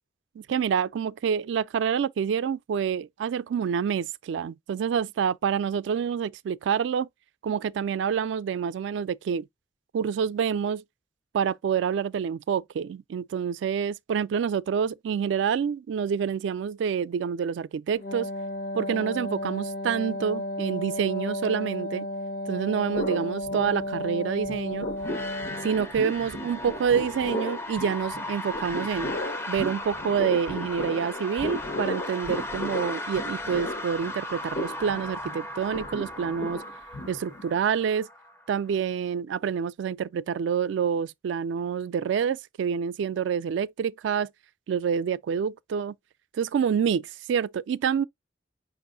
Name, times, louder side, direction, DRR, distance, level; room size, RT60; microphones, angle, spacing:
voice 1, 0.4-7.1 7.4-9.4 9.9-10.8 11.3-18.3 18.7-22.1 22.5-24.9 25.6-29.2 29.5-36.6 37.1-38.1 38.5-44.3 44.7-45.9 46.3-48.0, right 7 dB, 80° right, 0.3 m, -27 dB
Wind instrument woodwind instrument, 17.9-25.9, left 1 dB, 50° left, 0.7 m, -33 dB
sound 1, 22.9-24.2 24.4-37.6, left 1 dB, 75° left, 1.0 m, -36 dB
sound 2, 25.0-38.7, left 1 dB, 15° left, 0.4 m, -37 dB
5.4 x 2.5 x 3.6 m
head